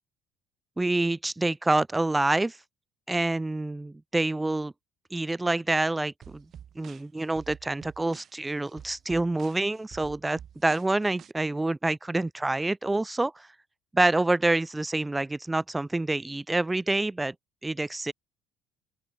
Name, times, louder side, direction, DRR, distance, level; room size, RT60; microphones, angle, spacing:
voice 1, 0.8-2.6 3.1-4.7 5.1-6.4 6.8-13.5 13.9-17.3 17.6-18.1, right 2 dB, 10° right, 0.6 m, -27 dB
sound 1, 6.2-11.3, right 9 dB, 40° right, 4.1 m, -49 dB
open air
cardioid pair, 145°, 0 cm